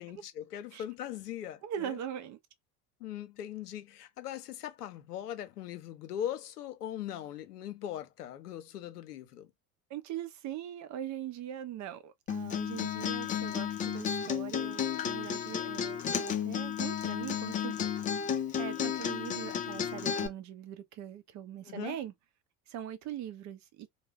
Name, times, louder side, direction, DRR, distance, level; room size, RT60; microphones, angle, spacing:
voice 1, 0.0-2.0 3.0-9.5 21.6-22.0, left 11 dB, 85° left, 0.6 m, -40 dB
voice 2, 1.6-2.4 9.9-17.8 18.5-22.1 22.7-23.9, right 10 dB, 40° right, 0.6 m, -41 dB
Acoustic guitar, 12.3-20.3, left 8 dB, 20° left, 0.3 m, -33 dB
2.3 x 2.1 x 3.4 m
hypercardioid pair, 70°, 46 cm